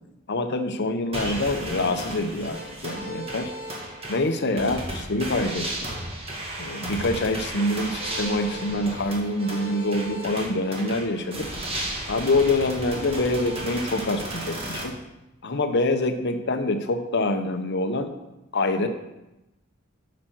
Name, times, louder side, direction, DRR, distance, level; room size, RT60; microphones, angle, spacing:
voice 1, 0.3-3.5 4.1-5.7 6.6-11.5 12.1-15.0 15.4-18.1 18.5-18.9, left 2 dB, 55° left, 8 dB, 0.9 m, -25 dB
sound 1, 1.1-14.8, right 1 dB, 30° right, 1.8 m, -34 dB
8.8 x 5.1 x 6.2 m, 0.97 s
head